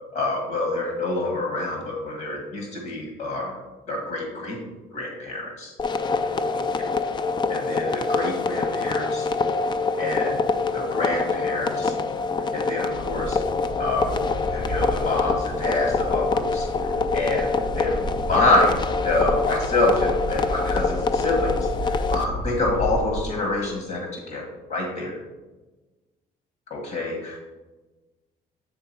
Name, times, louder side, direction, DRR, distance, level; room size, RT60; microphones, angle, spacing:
voice 1, 0.1-3.5 3.9-4.6 4.9-5.7 6.5-6.6 7.5-9.3 10.0-10.4 10.7-11.9 12.5-13.4 13.8-14.1 14.5-16.7 17.1-17.5 17.7-18.0 18.3-18.8 19.0-21.6 21.8-24.4 24.7-25.2 26.7-27.4, left 2 dB, 60° left, 0 dB, 1.4 m, -26 dB
sound 1, 5.8-22.2, left 4 dB, 25° left, 0.4 m, -25 dB
sound 2, 12.9-23.3, equal, 85° left, 2.1 m, -32 dB
8.7 x 3.4 x 4.5 m, 1.2 s
cardioid pair, 110°, 17 cm